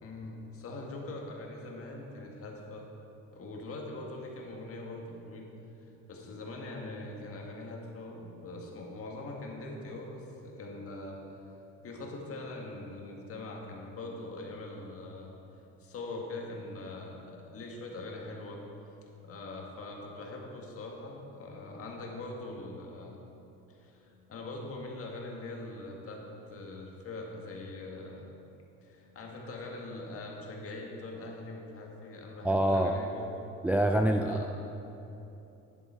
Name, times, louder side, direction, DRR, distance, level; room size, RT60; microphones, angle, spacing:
voice 1, 0.0-2.9 3.3-5.5 6.1-11.2 11.8-15.3 15.8-18.6 19.2-23.2 23.7-26.2 26.5-28.3 28.8-33.5 34.2-34.4, left 2 dB, 50° left, 0 dB, 1.7 m, -42 dB
voice 2, 32.4-33.0 33.6-34.6, right 1 dB, 5° right, 4 dB, 0.3 m, -26 dB
10.0 x 7.9 x 4.5 m, 2.9 s
cardioid pair, 110°, 30 cm